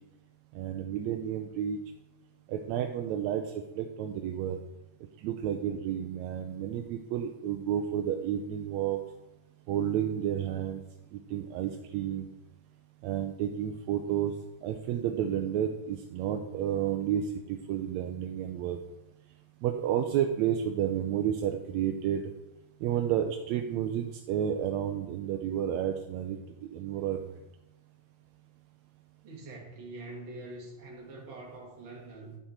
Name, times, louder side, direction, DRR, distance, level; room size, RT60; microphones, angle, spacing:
voice 1, 0.5-1.8 2.5-4.6 5.2-9.0 9.7-10.8 11.3-12.3 13.0-14.3 14.6-18.8 19.6-22.3 22.8-26.4 26.7-27.2, right 10 dB, 80° right, 4 dB, 1.7 m, -31 dB
voice 2, 29.2-32.4, right 2 dB, 45° right, -1 dB, 2.3 m, -44 dB
11.0 x 5.8 x 4.3 m, 0.95 s
omnidirectional pair, 3.5 m